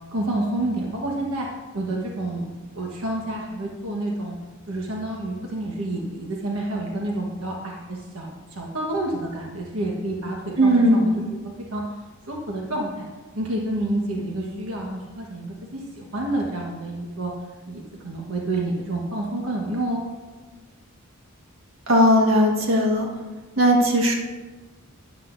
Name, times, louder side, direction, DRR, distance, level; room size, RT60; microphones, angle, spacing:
voice 1, 0.1-1.5 1.7-2.5 2.7-4.4 4.7-11.4 11.7-11.8 12.3-13.1 13.3-17.3 17.7-20.1, right 1 dB, 85° right, -1 dB, 1.3 m, -29 dB
voice 2, 10.6-11.1 21.9-23.1 23.6-24.1, equal, 70° right, -1 dB, 1.6 m, -17 dB
12.0 x 10.5 x 2.6 m, 1.3 s
head